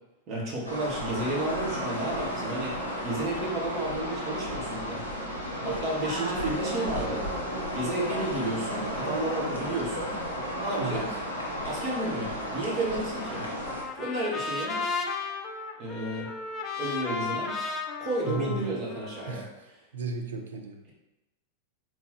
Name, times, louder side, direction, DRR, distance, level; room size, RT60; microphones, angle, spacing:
voice 1, 0.3-5.0 5.6-7.3 7.7-10.1 10.6-11.1 11.6-13.5 14.0-14.8 15.8-16.3 16.8-17.5 18.0-19.4, right 1 dB, 35° right, -4 dB, 1.4 m, -32 dB
sound 1, 0.6-13.8, equal, 90° right, 0.9 m, -33 dB
Trumpet, 13.2-19.4, left 4 dB, 30° left, 0.5 m, -35 dB
voice 2, 18.3-18.7 19.2-20.8, right 3 dB, 65° right, 4 dB, 0.6 m, -34 dB
3.8 x 3.1 x 4.4 m, 1.0 s
figure-of-eight pair, 90°, 0 cm